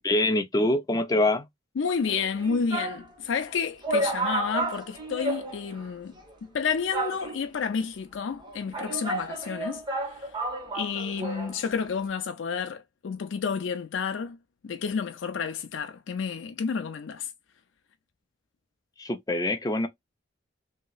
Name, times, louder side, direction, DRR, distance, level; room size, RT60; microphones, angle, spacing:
voice 1, 0.0-1.5 19.0-19.9, left 1 dB, 20° left, 0.4 m, -24 dB
voice 2, 1.8-10.3 10.7-14.4 14.6-17.3, left 6 dB, 80° left, 0.4 m, -30 dB
sound 1, 2.1-3.1 3.5-3.6 3.8-5.9 6.2-6.3 6.9-7.6 8.4-11.6 11.8-11.9, right 2 dB, 25° right, 1.0 m, -32 dB
2.9 x 2.8 x 2.3 m
head